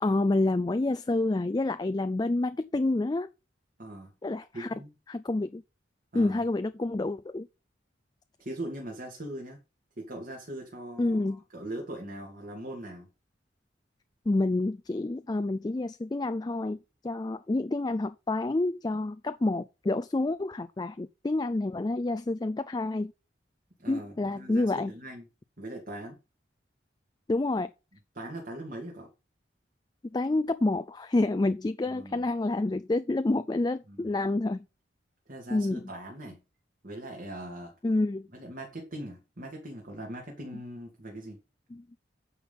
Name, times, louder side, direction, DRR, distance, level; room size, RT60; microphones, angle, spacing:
voice 1, 0.0-3.3 4.2-4.7 5.1-5.6 6.1-7.5 11.0-11.4 14.3-23.1 23.9-24.9 27.3-27.7 30.1-34.7 35.5-35.8 37.8-38.3 41.7-41.8, left 2 dB, 20° left, 0.4 m, -28 dB
voice 2, 3.8-4.1 4.5-4.9 6.1-6.4 8.4-9.6 10.0-13.1 23.8-25.2 25.6-26.2 28.1-29.1 31.8-32.2 33.9-34.1 35.3-36.4 36.8-37.8 38.3-41.4, right 1 dB, 45° right, 2.6 m, -40 dB
9.5 x 5.4 x 5.7 m
head